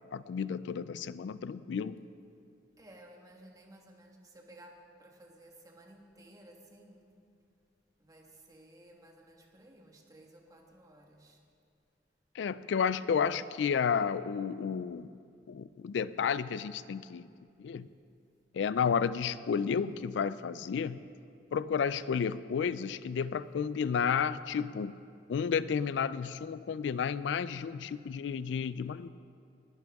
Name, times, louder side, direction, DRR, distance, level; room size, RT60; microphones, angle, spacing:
voice 1, 0.1-2.0 12.3-15.1 15.5-17.3 17.6-17.9 18.5-21.0 21.5-24.9 25.3-29.1, left 6 dB, 80° left, 16 dB, 0.3 m, -32 dB
voice 2, 2.8-7.1 8.0-11.4, right 1 dB, 20° right, 1 dB, 1.5 m, -56 dB
20.0 x 11.0 x 3.5 m, 2.4 s
head